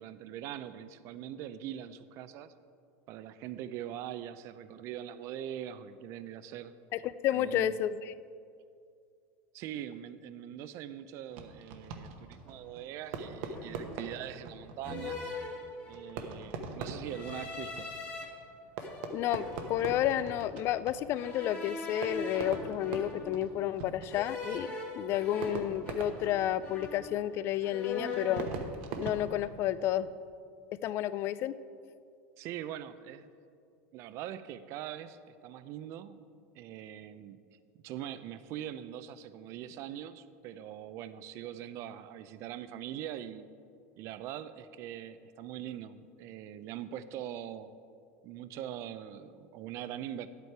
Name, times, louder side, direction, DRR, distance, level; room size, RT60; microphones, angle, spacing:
voice 1, 0.0-2.5 3.1-6.7 7.3-7.8 9.5-15.2 15.9-17.9 32.4-33.3 33.9-36.3 36.6-37.4 37.8-43.5 44.0-47.8 48.2-50.3, right 11 dB, 45° right, 13 dB, 0.5 m, -42 dB
voice 2, 6.9-8.1 19.1-24.7 25.0-28.5 29.0-30.1 30.8-31.5, left 12 dB, 40° left, 16 dB, 0.3 m, -31 dB
Fireworks, 11.3-30.1, right 4 dB, 70° right, 1.0 m, -43 dB
sound 1, 12.4-12.7 13.5-14.1 14.8-16.2 17.0-18.2 18.8-20.4 21.1-23.5 24.1-26.4 26.6-27.3 27.6-28.5, left 3 dB, 25° left, 1.7 m, -42 dB
10.5 x 8.2 x 4.6 m, 2.3 s
supercardioid pair, 145°, 7 cm